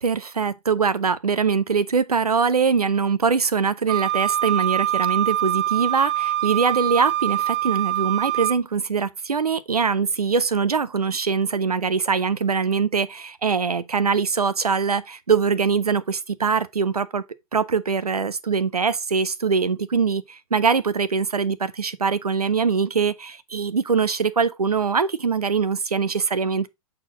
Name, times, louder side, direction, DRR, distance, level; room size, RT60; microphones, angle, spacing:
voice 1, 0.0-17.2 17.5-26.7, right 5 dB, 80° right, 0.6 m, -23 dB
Wind instrument woodwind instrument, 3.9-8.6, right 13 dB, 45° right, 0.9 m, -24 dB
7.3 x 4.3 x 3.8 m
figure-of-eight pair, 105°, 19 cm